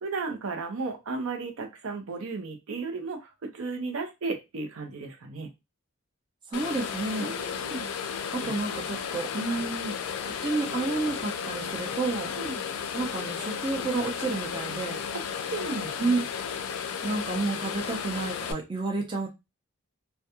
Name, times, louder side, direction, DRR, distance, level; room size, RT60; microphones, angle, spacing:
voice 1, 0.0-5.5 7.2-7.9 8.4-8.5 9.5-9.6 12.4-12.6 15.1-16.1, right 3 dB, 70° right, 4 dB, 0.6 m, -35 dB
sound 1, 6.5-18.5, left 7 dB, 90° left, 0.4 m, -34 dB
voice 2, 6.5-7.3 8.3-10.0 10.2-12.3 12.9-15.0 16.0-16.2 17.0-19.3, right 3 dB, 20° right, 1 dB, 0.5 m, -30 dB
2.3 x 2.2 x 2.8 m, 0.23 s
head